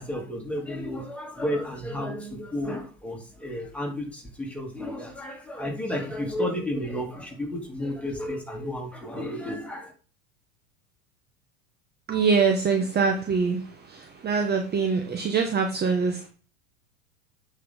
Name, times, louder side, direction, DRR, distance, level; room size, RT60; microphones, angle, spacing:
voice 1, 0.0-9.9, left 1 dB, 5° left, -1 dB, 3.4 m, -32 dB
voice 2, 12.1-13.6 14.2-16.3, right 5 dB, 25° right, 4 dB, 1.2 m, -23 dB
8.3 x 5.8 x 3.9 m, 0.38 s
hypercardioid pair, 90°, 42 cm